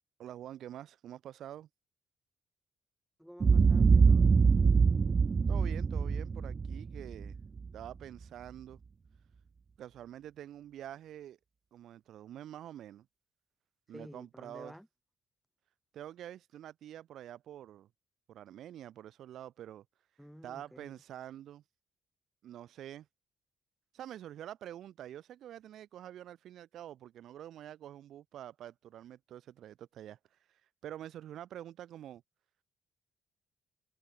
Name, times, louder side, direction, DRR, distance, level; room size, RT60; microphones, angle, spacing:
voice 1, 0.2-1.7 5.5-7.4 7.7-8.8 9.8-11.4 11.7-13.1 13.9-14.7 15.9-17.9 18.3-19.9 20.4-21.6 22.4-23.1 23.9-30.2 30.5-32.2, right 11 dB, 75° right, 3.9 m, -47 dB
voice 2, 3.2-4.5 13.9-14.9 20.2-21.0, equal, ahead, 7.9 m, -52 dB
Boom, 3.4-7.7, right 5 dB, 40° right, 1.2 m, -24 dB
cardioid pair, 90°, 0 cm